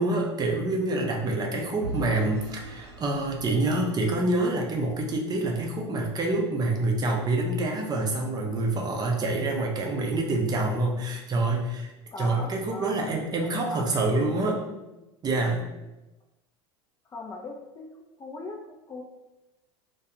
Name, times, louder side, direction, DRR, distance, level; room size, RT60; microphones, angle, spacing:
voice 1, 0.0-11.9 12.2-14.6 15.2-15.6, right 2 dB, 30° right, 0 dB, 0.5 m, -26 dB
voice 2, 1.4-1.8 12.1-13.4 13.7-14.2 14.7-15.0 15.5-15.9 17.1-17.9 18.2-18.6 18.9-19.0, left 2 dB, 25° left, 0 dB, 0.4 m, -40 dB
Vehicle / Engine, 1.8-4.8, right 2 dB, 75° right, 0.7 m, -39 dB
2.3 x 2.2 x 2.8 m, 1.0 s
hypercardioid pair, 85°, 14 cm